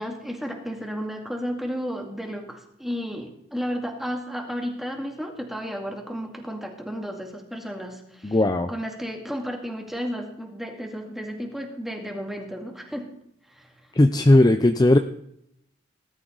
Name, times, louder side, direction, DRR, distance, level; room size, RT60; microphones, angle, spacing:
voice 1, 0.0-8.4 8.7-13.1 13.5-13.7, equal, ahead, 2 dB, 2.3 m, -33 dB
voice 2, 8.2-8.7 13.9-15.0, left 1 dB, 20° left, 8 dB, 0.6 m, -17 dB
19.0 x 12.5 x 4.0 m, 0.75 s
head